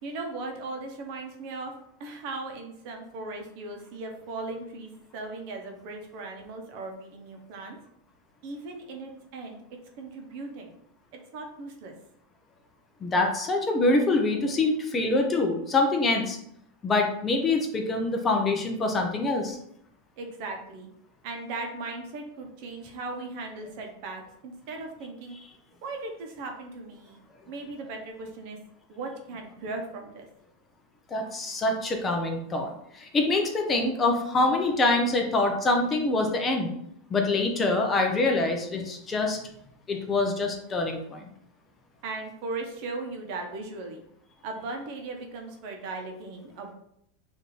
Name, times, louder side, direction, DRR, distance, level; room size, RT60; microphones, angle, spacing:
voice 1, 0.0-1.7 2.0-7.8 8.4-9.6 10.0-10.8 11.3-11.9 20.2-20.9 21.2-25.4 25.8-27.2 27.5-28.6 28.9-30.3 42.0-44.0 44.4-46.7, right 3 dB, 55° right, 3 dB, 0.9 m, -38 dB
voice 2, 13.0-16.4 16.8-19.6 31.1-36.7 37.1-39.4 39.9-41.2, left 2 dB, 20° left, 3 dB, 0.6 m, -25 dB
4.8 x 2.7 x 3.2 m, 0.73 s
supercardioid pair, 145°, 0 cm